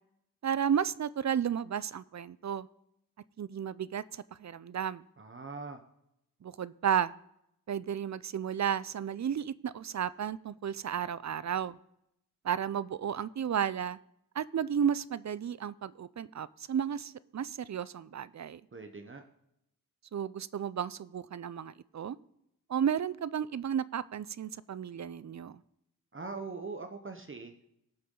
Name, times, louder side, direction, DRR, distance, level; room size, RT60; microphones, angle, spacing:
voice 1, 0.4-2.7 3.4-5.0 6.4-7.1 7.7-11.8 12.4-14.0 14.4-18.6 20.1-22.2 22.7-25.6, right 8 dB, 55° right, 18 dB, 0.4 m, -33 dB
voice 2, 5.2-5.8 18.7-19.2 26.1-27.8, right 4 dB, 35° right, 6 dB, 0.9 m, -42 dB
18.5 x 6.9 x 3.8 m, 0.79 s
wide cardioid pair, 115°, 34 cm